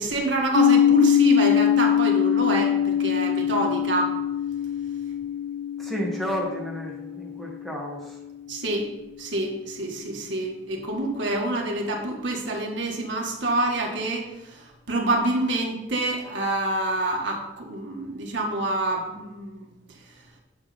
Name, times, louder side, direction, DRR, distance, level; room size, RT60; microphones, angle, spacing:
voice 1, 0.0-4.1 8.5-8.9 9.2-19.7, right 2 dB, 75° right, 0 dB, 1.8 m, -27 dB
sound 1, 0.5-8.3, left 9 dB, 70° left, 0.4 m, -23 dB
voice 2, 5.8-8.2, equal, ahead, -2 dB, 1.9 m, -31 dB
9.4 x 6.6 x 4.2 m, 0.98 s
head